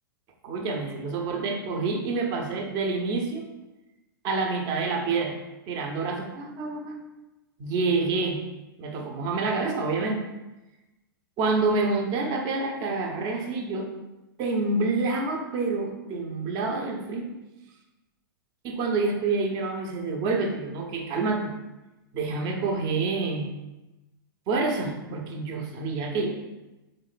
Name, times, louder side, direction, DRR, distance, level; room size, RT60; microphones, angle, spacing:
voice 1, 0.4-3.5 4.2-5.4 5.7-7.0 7.6-8.4 8.8-10.2 11.4-13.9 14.4-17.3 18.6-21.5 22.1-23.5 24.5-26.4, right 3 dB, 35° right, 2 dB, 0.8 m, -27 dB
3.4 x 3.2 x 4.1 m, 1.0 s
hypercardioid pair, 115°, 12 cm